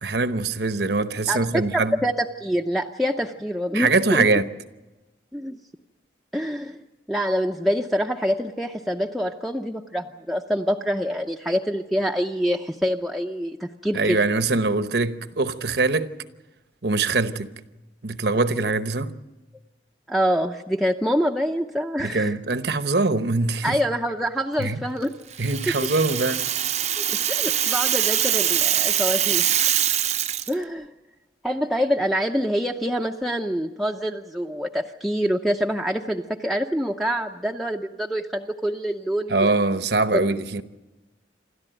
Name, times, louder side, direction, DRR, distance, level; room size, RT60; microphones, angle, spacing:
voice 1, 0.0-2.0 3.7-4.5 13.9-16.1 16.8-17.5 18.0-19.1 22.0-23.8 24.6-24.8 25.4-26.4 39.3-40.6, right 3 dB, 60° right, 1.0 m, -23 dB
voice 2, 1.3-4.3 5.3-5.6 6.3-6.8 7.1-14.2 20.1-22.3 23.6-25.1 25.7-25.9 27.0-29.5 30.5-30.9 31.4-39.5 40.1-40.3, equal, ahead, 0.6 m, -26 dB
Rattle (instrument), 25.3-30.5, right 10 dB, 35° right, 0.7 m, -23 dB
27.5 x 13.0 x 9.0 m
head